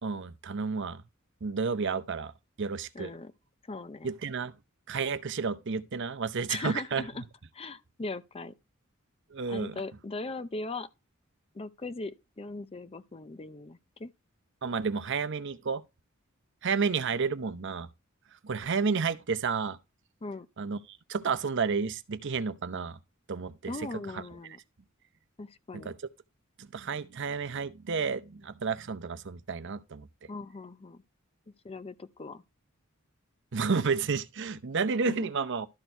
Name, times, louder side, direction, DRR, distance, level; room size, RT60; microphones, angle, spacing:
voice 1, 0.0-1.0 1.4-2.3 2.6-3.1 4.0-4.5 4.9-7.0 9.3-9.8 14.6-15.8 16.6-17.9 18.4-19.8 20.6-23.0 23.3-23.9 24.1-24.2 25.7-25.9 26.6-30.1 33.5-35.7, right 5 dB, 60° right, 0.7 m, -31 dB
voice 2, 2.9-3.3 3.7-4.1 6.5-7.2 7.5-8.5 9.5-10.9 11.5-14.1 20.2-20.5 23.7-24.6 25.4-25.9 30.3-31.0 31.6-32.4 35.0-35.3, left 3 dB, 30° left, 0.6 m, -39 dB
12.5 x 4.5 x 4.5 m
head